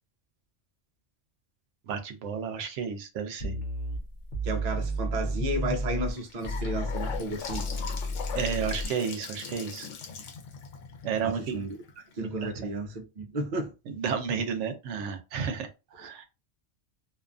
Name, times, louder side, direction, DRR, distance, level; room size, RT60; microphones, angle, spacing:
voice 1, 1.9-3.6 8.3-9.9 11.0-11.6 12.2-12.5 13.9-16.2, right 6 dB, 80° right, 0.9 m, -32 dB
sound 1, 3.4-6.1 6.4-8.9, equal, 50° left, 0.7 m, -32 dB
voice 2, 4.4-7.7 11.2-11.8 12.2-13.7, right 1 dB, 50° right, 0.5 m, -33 dB
Gurgling / Sink (filling or washing) / Bathtub (filling or washing), 6.0-12.1, left 6 dB, 80° left, 1.0 m, -40 dB
2.5 x 2.3 x 2.4 m
omnidirectional pair, 1.3 m